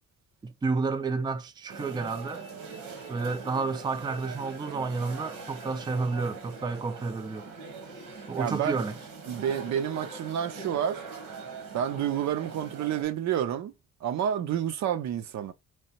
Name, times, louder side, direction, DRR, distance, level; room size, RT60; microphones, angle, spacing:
voice 1, 0.4-2.4 3.1-7.5 8.3-9.0, right 4 dB, 15° right, 0.4 m, -31 dB
sound 1, 1.7-13.0, right 4 dB, 85° right, 1.4 m, -42 dB
voice 2, 8.4-8.8 9.3-11.0 11.7-13.7 14.0-15.5, right 9 dB, 65° right, 0.6 m, -29 dB
3.3 x 3.2 x 2.9 m
cardioid pair, 90°, 30 cm